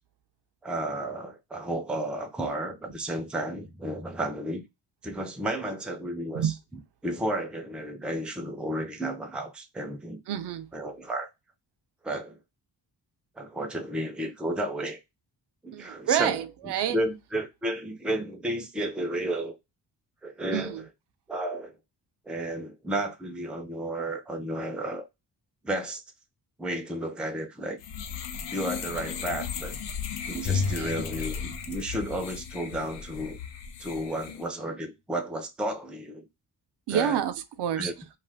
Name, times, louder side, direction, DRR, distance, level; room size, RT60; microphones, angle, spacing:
voice 1, 0.6-4.6 5.0-6.5 7.0-10.2 10.7-11.3 12.0-12.4 13.4-15.0 15.6-16.3 16.9-19.6 20.2-20.8 21.3-21.8 22.3-25.1 25.6-26.0 26.6-27.8 28.5-29.8 30.3-33.4 33.8-36.3 36.9-37.2 37.7-37.9, right 1 dB, 5° right, 0.4 m, -32 dB
voice 2, 10.3-10.7 15.7-17.0 20.5-20.8 30.5-30.9 36.9-37.9, right 10 dB, 75° right, 0.5 m, -29 dB
sound 1, 27.8-34.5, left 7 dB, 85° left, 0.6 m, -36 dB
Bowed string instrument, 30.4-32.8, left 5 dB, 40° left, 0.8 m, -34 dB
2.4 x 2.4 x 3.3 m
wide cardioid pair, 125°, 41 cm